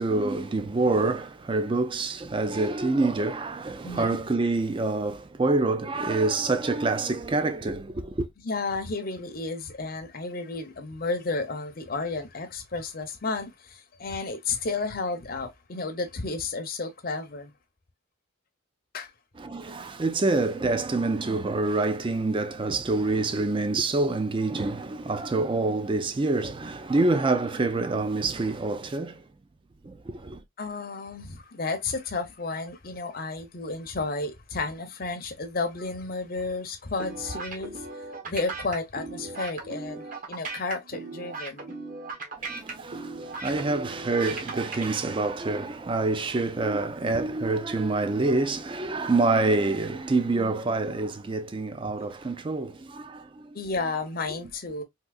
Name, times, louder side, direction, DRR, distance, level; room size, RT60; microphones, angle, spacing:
voice 1, 0.0-8.3 19.4-29.2 29.8-30.4 42.4-53.4, right 3 dB, 25° right, 0.3 m, -26 dB
voice 2, 3.8-4.2 8.4-17.5 18.9-19.1 30.6-37.9 38.2-41.7 47.1-47.2 53.5-54.8, left 3 dB, 45° left, 0.7 m, -32 dB
sound 1, 37.0-44.8, right 3 dB, 40° right, 0.9 m, -37 dB
3.7 x 2.7 x 2.3 m
head